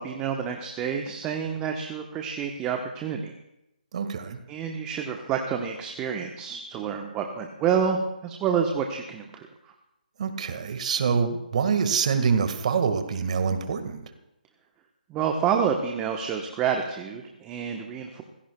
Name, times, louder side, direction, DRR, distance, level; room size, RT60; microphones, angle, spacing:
voice 1, 0.0-3.3 4.5-9.7 15.1-18.2, right 7 dB, 15° right, 3 dB, 1.0 m, -28 dB
voice 2, 3.9-4.4 10.2-14.1, right 6 dB, 50° right, 8 dB, 1.7 m, -25 dB
27.0 x 16.5 x 2.3 m, 0.88 s
hypercardioid pair, 150°, 5 cm